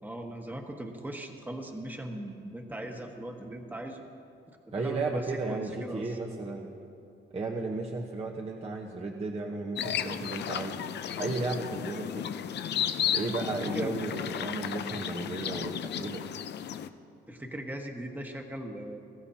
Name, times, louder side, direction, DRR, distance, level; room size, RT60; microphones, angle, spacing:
voice 1, 0.0-4.0 4.8-6.2 13.7-13.9 17.3-19.0, right 1 dB, 10° right, 2 dB, 1.4 m, -39 dB
voice 2, 4.7-6.7 7.3-10.8 11.2-12.3 13.1-16.2, right 3 dB, 30° right, 0 dB, 1.1 m, -34 dB
sound 1, 9.8-16.9, left 9 dB, 60° left, 0.6 m, -33 dB
22.5 x 14.0 x 2.9 m, 2.5 s
cardioid pair, 90°, 20 cm